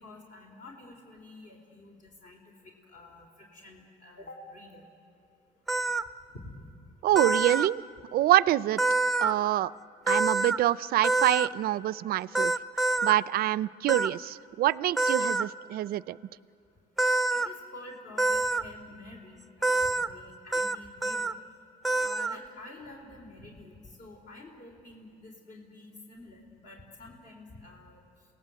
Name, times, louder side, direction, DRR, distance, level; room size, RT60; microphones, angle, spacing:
voice 1, 0.0-4.8 6.3-6.7 17.3-21.3 22.0-28.0, left 2 dB, 55° left, 0 dB, 3.9 m, -49 dB
sound 1, 5.7-6.0 7.1-7.7 8.8-9.3 10.1-10.6 11.0-11.5 12.3-13.1 13.9-14.1 15.0-15.4 17.0-17.5 18.2-18.6 19.6-20.1 20.5-20.7 21.0-21.3 21.8-22.4, right 2 dB, ahead, 0.6 m, -26 dB
voice 2, 7.0-7.8 8.1-8.8 9.2-9.7 10.1-16.2, right 14 dB, 60° right, 19 dB, 0.4 m, -26 dB
27.5 x 18.0 x 7.7 m, 2.5 s
cardioid pair, 110°, 17 cm